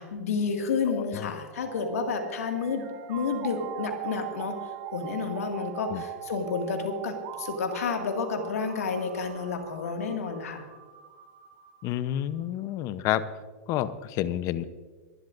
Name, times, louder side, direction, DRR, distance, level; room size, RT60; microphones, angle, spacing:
voice 1, 0.0-4.6 4.9-10.6, left 5 dB, 85° left, 4 dB, 2.0 m, -30 dB
voice 2, 0.9-1.3 5.9-6.0 11.8-13.2 13.7-14.6, left 12 dB, 45° left, 14 dB, 0.8 m, -29 dB
sound 1, 1.5-12.5, right 12 dB, 50° right, 1.5 m, -41 dB
26.5 x 11.5 x 2.6 m, 1.4 s
hypercardioid pair, 115°, 8 cm